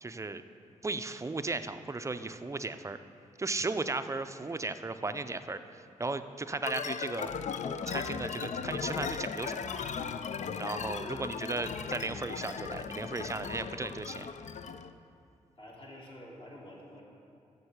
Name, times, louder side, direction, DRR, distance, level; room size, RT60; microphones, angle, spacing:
voice 1, 0.0-0.4 0.8-3.0 3.4-7.3 7.9-9.8 10.6-14.3, right 3 dB, 20° right, 10 dB, 0.4 m, -36 dB
sound 1, 6.6-14.9, left 6 dB, 60° left, 0.4 m, -37 dB
voice 2, 15.6-17.0, left 1 dB, 40° left, -4 dB, 2.3 m, -49 dB
7.0 x 6.5 x 6.5 m, 2.7 s
cardioid pair, 55°, 14 cm